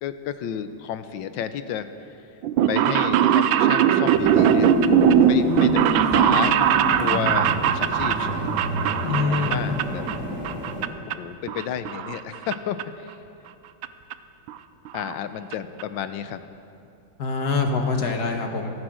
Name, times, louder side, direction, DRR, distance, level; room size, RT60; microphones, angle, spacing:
voice 1, 0.0-2.2 2.7-4.7 5.3-6.5 7.0-8.5 9.0-10.1 11.1-13.1 14.9-16.4, left 9 dB, 75° left, 11 dB, 1.4 m, -31 dB
sound 1, 2.4-10.2 10.4-11.1 11.5-12.5 12.8-12.9 13.8-13.9 14.1-14.2 14.5-14.6 14.9-15.1 15.5-15.6 15.8-15.9, right 10 dB, 80° right, 1.4 m, -21 dB
sound 2, 4.1-10.9, left 1 dB, 5° right, 3.8 m, -27 dB
voice 2, 9.0-9.6 17.2-18.7, left 4 dB, 55° left, 4 dB, 1.8 m, -24 dB
16.0 x 14.0 x 6.3 m, 2.6 s
omnidirectional pair, 2.2 m